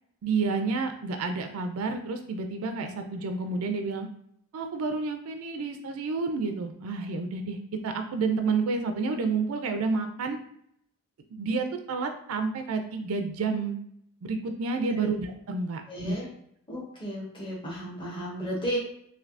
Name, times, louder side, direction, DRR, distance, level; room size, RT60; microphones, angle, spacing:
voice 1, 0.2-4.1 4.5-10.4 11.3-13.8 14.2-16.2, right 4 dB, 75° right, 6 dB, 0.4 m, -30 dB
voice 2, 15.9-16.3 16.7-18.8, equal, 20° left, -5 dB, 0.9 m, -34 dB
3.2 x 2.7 x 2.4 m, 0.71 s
head